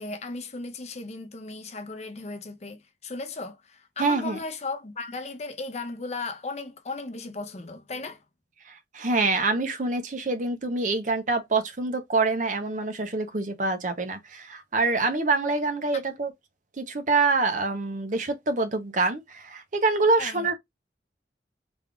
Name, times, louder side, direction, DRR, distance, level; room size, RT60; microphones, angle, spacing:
voice 1, 0.0-8.2 15.9-16.1 20.2-20.5, left 3 dB, 40° left, 0.6 m, -36 dB
voice 2, 4.0-4.4 8.7-16.3 16.8-20.5, right 3 dB, 45° right, 0.7 m, -26 dB
3.4 x 2.3 x 3.7 m
head